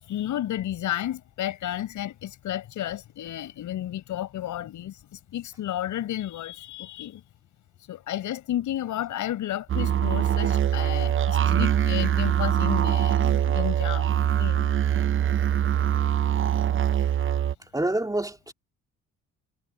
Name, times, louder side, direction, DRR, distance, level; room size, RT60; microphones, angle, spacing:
voice 1, 0.0-7.2 7.9-14.7, left 12 dB, 80° left, 7.6 m, -32 dB
sound 1, 9.7-17.5, right 10 dB, 45° right, 0.7 m, -23 dB
voice 2, 17.7-18.5, right 1 dB, 10° right, 2.8 m, -27 dB
cardioid pair, 90°, 30 cm